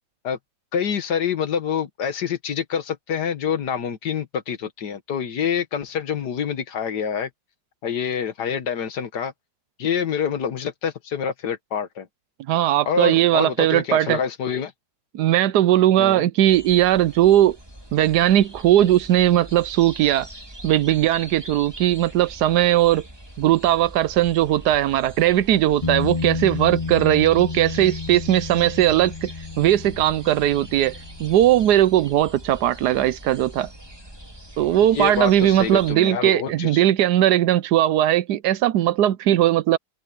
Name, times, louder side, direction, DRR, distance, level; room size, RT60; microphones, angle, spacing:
voice 1, 0.7-7.3 7.8-9.3 9.8-12.1 12.9-14.7 16.0-16.3 34.9-36.8, left 7 dB, 75° left, 1.9 m, -26 dB
voice 2, 12.5-14.2 15.1-17.6 17.9-20.3 20.6-23.0 23.4-29.3 29.6-30.9 31.2-33.7 34.6-39.8, right 12 dB, 80° right, 1.2 m, -19 dB
sound 1, 16.5-35.9, right 1 dB, 15° right, 3.0 m, -42 dB
sound 2, 25.8-33.4 36.5-36.6, left 4 dB, 25° left, 0.9 m, -32 dB
omnidirectional pair, 1.8 m